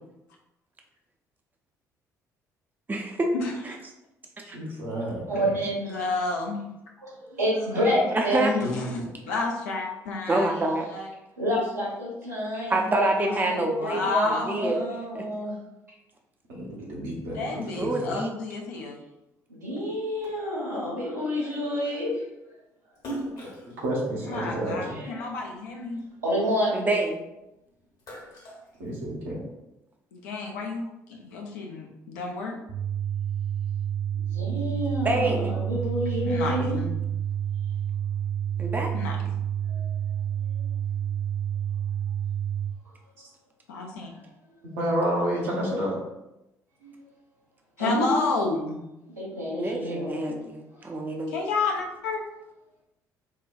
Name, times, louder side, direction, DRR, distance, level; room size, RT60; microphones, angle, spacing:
voice 1, 2.9-3.3 4.5-4.6 8.1-8.5 10.3-10.9 12.7-14.8 15.1-15.3 17.8-18.3 26.7-27.2 35.0-35.5 38.6-38.9 49.5-51.3, right 2 dB, 20° right, 2 dB, 0.5 m, -27 dB
voice 2, 4.4-5.5 16.5-18.1 23.4-23.5 23.8-25.0 28.8-29.4 44.7-46.0, right 1 dB, 70° right, -4 dB, 1.0 m, -30 dB
voice 3, 5.3-6.0 7.3-8.5 11.4-13.1 13.8-15.5 19.5-22.2 24.6-25.2 26.2-26.8 34.1-36.8 39.6-39.9 40.6-40.7 40.9-41.0 46.8-46.9 47.8-48.1 49.2-50.4 50.7-50.9, equal, 85° right, -8 dB, 1.3 m, -29 dB
voice 4, 5.9-6.6 8.5-11.1 13.1-14.8 17.3-19.0 24.2-26.0 30.1-30.8 31.1-32.6 36.2-36.9 38.9-39.4 43.7-44.1 47.8-48.8 51.3-52.2, left 3 dB, 70° left, 0 dB, 0.6 m, -30 dB
Splash splatter, 22.9-25.5 26.0-27.4 27.8-29.5, right 1 dB, 50° left, 1.0 m, -40 dB
sound 1, 32.7-42.7, right 9 dB, 50° right, 0.8 m, -29 dB
4.6 x 2.2 x 2.4 m, 0.92 s
figure-of-eight pair, 50°, 9 cm